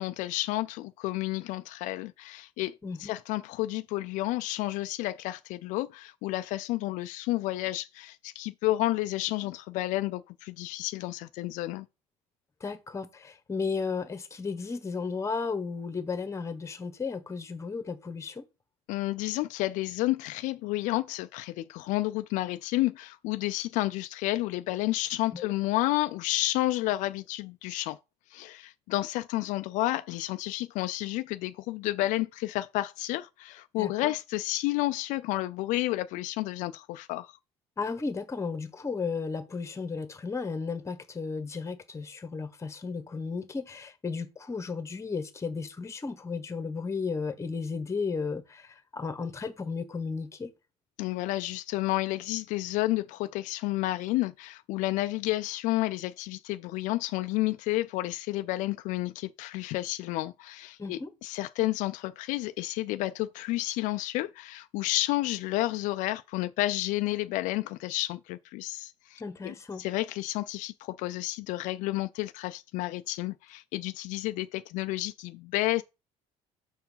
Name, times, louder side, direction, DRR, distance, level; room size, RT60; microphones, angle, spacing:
voice 1, 0.0-2.7 3.0-11.9 18.9-28.0 28.3-37.4 51.0-75.8, left 17 dB, 75° left, 0.4 m, -31 dB
voice 2, 2.8-3.2 12.6-18.4 25.3-25.5 33.8-34.1 37.8-50.5 60.8-61.1 69.2-69.8, left 4 dB, 20° left, 1.2 m, -34 dB
6.3 x 4.6 x 5.5 m
cardioid pair, 110°, 13 cm